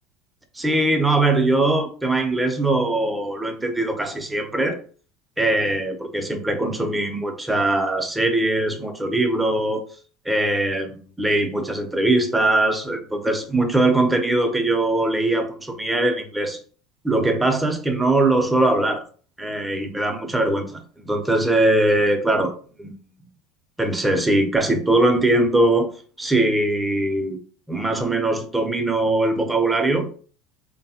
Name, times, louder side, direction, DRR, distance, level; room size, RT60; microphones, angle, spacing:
voice 1, 0.5-4.8 5.4-9.8 10.2-16.6 17.0-19.0 19.4-22.5 22.8-22.9 23.8-25.9 26.2-27.4 27.7-30.1, right 2 dB, 10° right, 0.7 m, -21 dB
3.4 x 2.2 x 2.8 m
hypercardioid pair, 75°, 0 cm